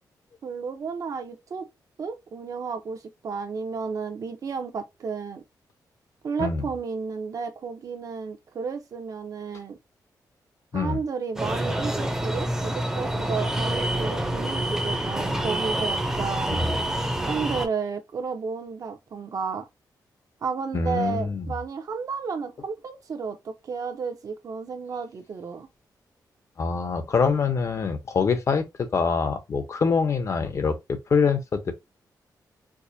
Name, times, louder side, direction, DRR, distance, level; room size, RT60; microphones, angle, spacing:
voice 1, 0.4-1.7 2.0-5.4 6.2-9.8 10.7-16.6 17.2-19.7 20.4-25.7, right 5 dB, 50° right, 0.8 m, -32 dB
sound 1, 11.4-17.7, right 1 dB, 5° right, 0.7 m, -27 dB
voice 2, 20.7-21.5 26.6-31.7, left 5 dB, 45° left, 0.7 m, -25 dB
4.7 x 2.2 x 2.7 m
wide cardioid pair, 150°, 7 cm